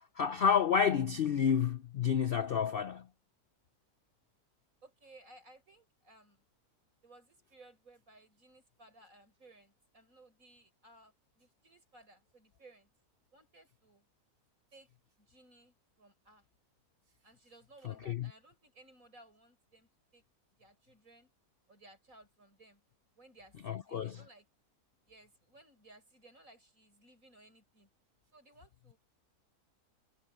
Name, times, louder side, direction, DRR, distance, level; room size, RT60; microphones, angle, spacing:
voice 1, 0.2-3.0 17.8-18.3 23.6-24.2, left 7 dB, 55° left, 0.6 m, -30 dB
voice 2, 4.8-6.5 7.0-12.9 13.3-14.1 14.7-14.9 15.2-16.5 17.2-20.2 20.6-21.3 21.7-22.8 23.2-24.5 25.1-27.9 28.3-29.0, right 2 dB, 60° right, 7.3 m, -60 dB
omnidirectional pair, 1.6 m